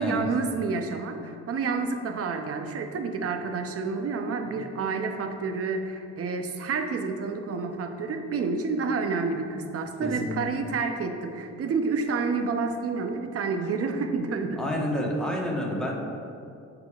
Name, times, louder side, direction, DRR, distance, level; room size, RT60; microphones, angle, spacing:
voice 1, 0.0-14.6, right 4 dB, 50° right, 6 dB, 0.6 m, -29 dB
voice 2, 10.0-10.5 14.6-15.9, left 1 dB, ahead, -3 dB, 1.2 m, -29 dB
10.0 x 4.9 x 2.4 m, 2.5 s
cardioid pair, 90°, 30 cm